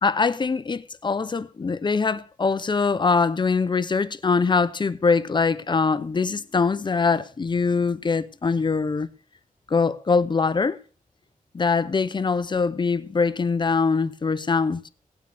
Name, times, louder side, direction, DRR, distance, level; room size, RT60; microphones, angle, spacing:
voice 1, 0.0-9.1 9.7-10.8 11.5-14.8, left 4 dB, 30° left, 0.5 m, -23 dB
17.0 x 9.3 x 3.3 m
wide cardioid pair, 155°, 15 cm